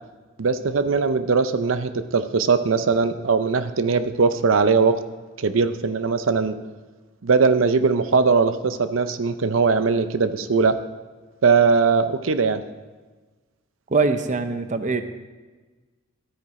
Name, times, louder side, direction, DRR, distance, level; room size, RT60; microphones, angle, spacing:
voice 1, 0.4-4.9 5.4-6.6 7.2-10.8 11.4-12.6, right 4 dB, 85° right, 11 dB, 0.6 m, -20 dB
voice 2, 13.9-15.0, right 4 dB, 40° right, 9 dB, 0.7 m, -22 dB
12.5 x 8.8 x 4.8 m, 1.3 s
head